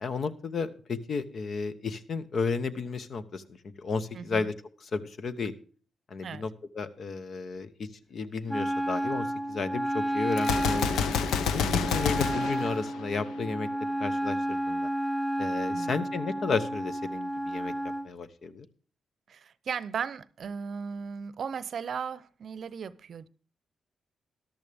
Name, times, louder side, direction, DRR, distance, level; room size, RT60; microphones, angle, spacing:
voice 1, 0.0-4.5 4.9-5.5 6.1-6.5 6.7-11.0 11.5-13.7 14.0-14.9 15.4-17.7 18.0-18.7, left 4 dB, 60° left, 1.0 m, -33 dB
voice 2, 4.1-4.5 6.2-6.5 11.6-12.0 15.7-16.1 19.3-23.3, right 6 dB, 65° right, 0.6 m, -37 dB
Wind instrument woodwind instrument, 8.5-18.1, equal, 5° left, 2.1 m, -31 dB
Gunshot gunfire, 10.4-13.5, left 7 dB, 85° left, 0.7 m, -29 dB
13.5 x 11.5 x 3.5 m
supercardioid pair, 55°, 0 cm